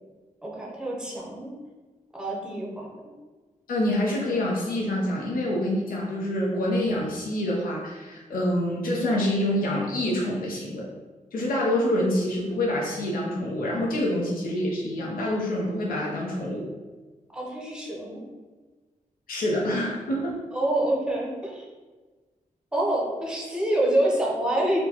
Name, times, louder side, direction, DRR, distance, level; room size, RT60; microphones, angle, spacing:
voice 1, 0.4-1.5 2.1-2.9 17.3-18.2 20.5-21.7 22.7-24.8, right 1 dB, 5° right, -3 dB, 0.6 m, -26 dB
voice 2, 3.7-10.9 11.3-16.7 19.3-20.4, left 1 dB, 90° left, -4 dB, 0.6 m, -26 dB
4.3 x 2.2 x 2.8 m, 1.3 s
wide cardioid pair, 160°, 14 cm